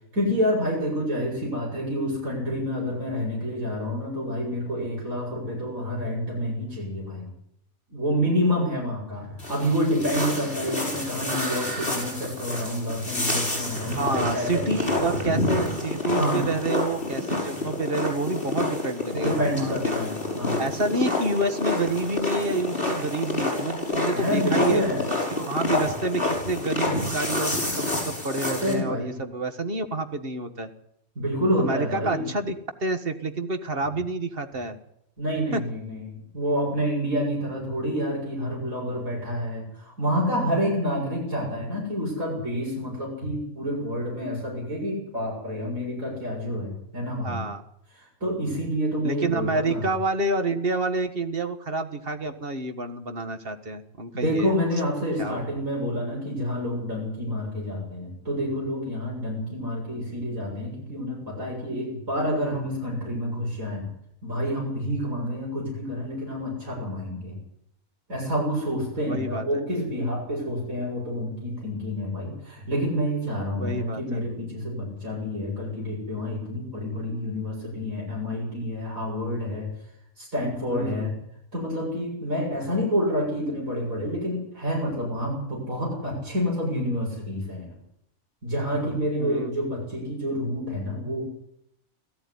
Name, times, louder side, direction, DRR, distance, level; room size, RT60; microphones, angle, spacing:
voice 1, 0.1-7.3 7.9-14.6 16.0-16.5 19.1-20.6 24.0-25.0 28.4-29.2 31.2-32.2 35.2-47.4 48.2-49.9 54.1-63.8 64.2-67.4 68.1-79.7 80.2-81.1 81.5-87.7 88.4-91.2, equal, 75° right, -3 dB, 7.6 m, -28 dB
sound 1, 9.4-28.7, left 2 dB, 40° left, 6.4 m, -28 dB
voice 2, 13.9-19.7 20.6-24.8 25.3-30.7 31.6-32.5 32.8-34.8 35.5-35.6 47.2-47.6 49.0-54.5 55.2-55.4 69.1-69.6 73.6-74.2 80.7-81.1 89.2-89.5, right 2 dB, 40° right, 8 dB, 1.7 m, -28 dB
18.0 x 14.5 x 9.8 m, 0.74 s
omnidirectional pair, 1.5 m